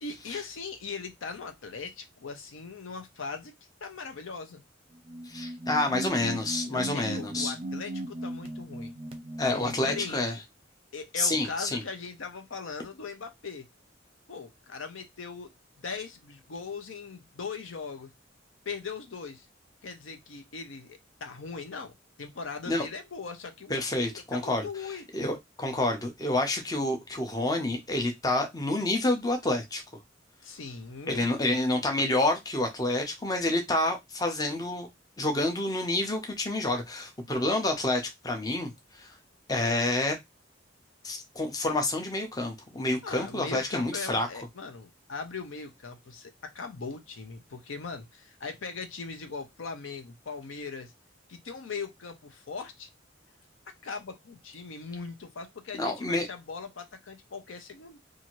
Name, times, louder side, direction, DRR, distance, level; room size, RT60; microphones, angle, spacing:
voice 1, 0.0-3.5 3.8-4.6 6.7-8.9 9.5-10.3 10.9-13.6 14.3-15.5 15.8-18.1 18.7-19.5 19.8-21.9 22.2-25.0 30.4-31.3 36.7-36.9 43.0-50.9 51.3-52.9 53.8-58.0, left 5 dB, 75° left, 0.6 m, -40 dB
sound 1, 4.9-10.2, right 1 dB, 30° right, 0.6 m, -37 dB
voice 2, 5.3-7.5 9.4-10.3 11.2-11.8 22.7-22.8 23.7-24.7 25.1-29.8 31.1-34.9 35.2-38.7 39.0-39.1 39.5-40.2 41.0-44.3 55.8-56.3, left 2 dB, 20° left, 0.5 m, -28 dB
2.7 x 2.5 x 3.0 m
head